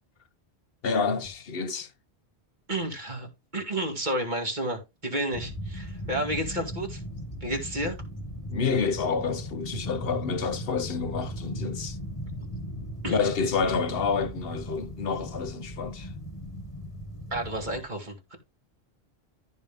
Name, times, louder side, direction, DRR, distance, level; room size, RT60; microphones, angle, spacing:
voice 1, 0.8-1.9 8.5-12.0 13.1-16.1, left 5 dB, 60° left, 1.2 m, -28 dB
voice 2, 2.7-7.0 7.4-8.0 13.0-13.2 17.3-18.4, right 1 dB, 45° right, 2.6 m, -31 dB
sound 1, 5.3-17.8, equal, 30° left, 1.8 m, -37 dB
14.0 x 5.3 x 3.6 m
omnidirectional pair, 1.1 m